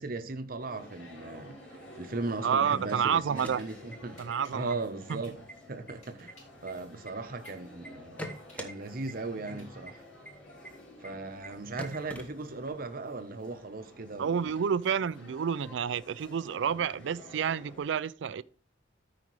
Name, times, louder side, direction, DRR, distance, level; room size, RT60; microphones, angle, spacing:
voice 1, 0.0-4.2 4.5-5.4 5.7-6.3 6.6-8.3 8.5-10.0 11.0-14.5, right 3 dB, 50° right, 0.8 m, -37 dB
sound 1, 0.6-17.8, left 1 dB, 75° left, 2.9 m, -51 dB
voice 2, 2.4-3.6 4.2-4.8 5.1-5.2 14.2-18.4, right 7 dB, 70° right, 0.4 m, -29 dB
sound 2, 3.2-4.3 4.7-4.8 5.1-5.5 5.9-7.5 7.8-8.7 9.1-9.2 9.5-9.6 9.9-10.0 10.3-10.4 10.6-10.7 11.0-11.1 11.4-11.5 11.8-12.8, equal, 10° left, 0.9 m, -43 dB
sound 3, 3.6-3.7 4.2-6.6 7.1-10.1, left 2 dB, 40° left, 3.4 m, -59 dB
13.0 x 5.0 x 3.1 m
head